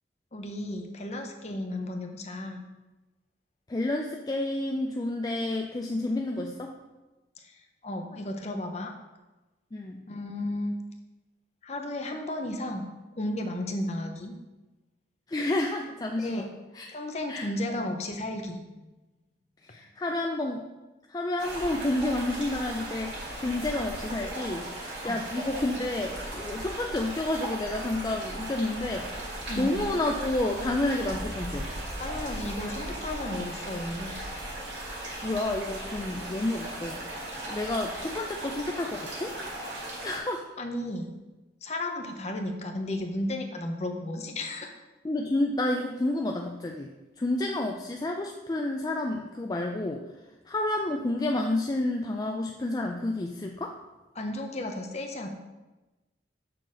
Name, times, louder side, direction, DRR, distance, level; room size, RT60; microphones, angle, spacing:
voice 1, 0.3-2.6 7.4-8.9 10.1-10.8 11.6-12.9 13.2-14.3 16.2-16.5 16.9-18.8 25.0-25.2 29.5-29.7 32.0-34.1 40.6-41.1 41.6-44.7 54.1-55.3, left 1 dB, 35° left, 4 dB, 0.8 m, -34 dB
voice 2, 3.7-6.7 9.7-10.0 15.3-16.5 16.7-16.9 17.3-17.5 19.6-20.6 21.1-29.1 29.6-31.7 35.2-37.0 37.5-39.4 40.0-40.4 45.0-50.0 50.5-53.8, left 2 dB, 20° left, 2 dB, 0.4 m, -30 dB
sound 1, 21.4-40.2, right 1 dB, 75° right, 2.5 m, -37 dB
6.7 x 4.0 x 6.2 m, 1.1 s
head